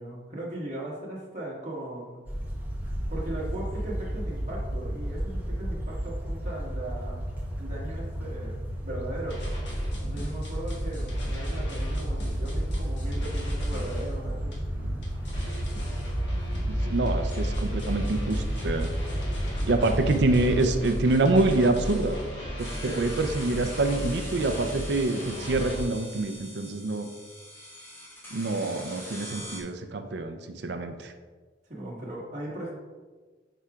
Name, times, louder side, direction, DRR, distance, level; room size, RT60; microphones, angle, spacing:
voice 1, 0.0-2.2 3.1-7.2 7.6-9.4 10.0-14.6 15.7-15.9 17.0-17.1 19.6-19.8 22.8-23.0 31.7-32.7, right 1 dB, 40° right, -5 dB, 1.7 m, -38 dB
sound 1, 2.3-20.7, equal, 10° right, 0.8 m, -32 dB
sound 2, 9.3-25.8, equal, 70° left, 1.4 m, -35 dB
voice 2, 16.7-18.9 19.7-22.2 22.6-27.1 28.3-31.1, right 2 dB, 70° right, 7 dB, 0.5 m, -26 dB
sound 3, 22.6-29.6, equal, 15° left, 1.3 m, -43 dB
8.7 x 5.0 x 2.4 m, 1.4 s
head